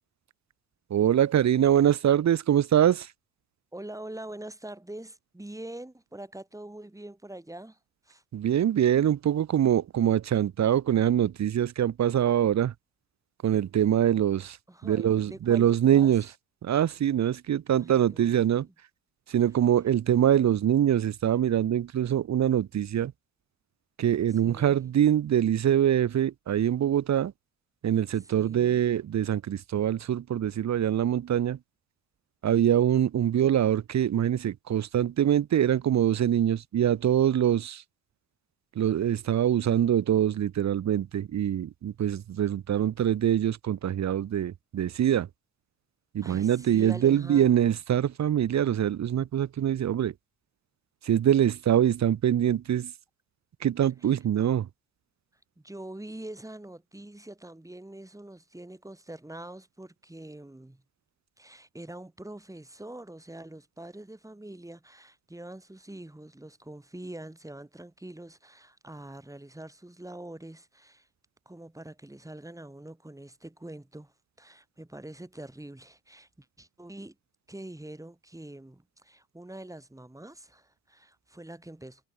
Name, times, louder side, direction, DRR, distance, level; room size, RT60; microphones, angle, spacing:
voice 1, 0.9-3.1 8.3-12.7 13.4-14.6 14.8-16.3 16.6-18.7 19.3-23.1 24.0-27.3 27.8-31.6 32.4-37.8 38.7-45.3 46.1-50.1 51.0-52.9 53.6-54.7, right 10 dB, 50° right, 1.3 m, -24 dB
voice 2, 3.7-7.8 8.0-8.2 14.7-16.2 17.7-18.6 24.3-24.8 28.1-28.8 46.2-47.8 54.0-54.1 55.6-60.8 61.4-71.1 71.5-77.2 77.5-82.0, right 1 dB, 10° right, 7.1 m, -44 dB
supercardioid pair, 65°, 34 cm